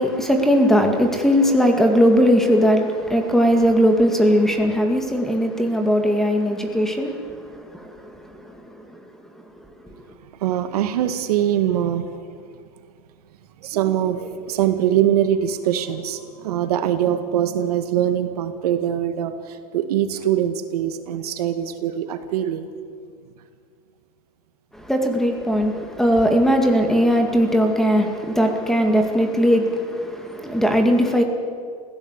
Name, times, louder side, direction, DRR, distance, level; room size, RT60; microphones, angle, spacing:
voice 1, 0.0-8.9 24.7-31.2, equal, ahead, 4 dB, 2.1 m, -19 dB
voice 2, 10.4-12.1 13.6-22.7, right 10 dB, 75° right, 8 dB, 2.0 m, -22 dB
25.0 x 16.0 x 8.2 m, 2.1 s
supercardioid pair, 155°, 20 cm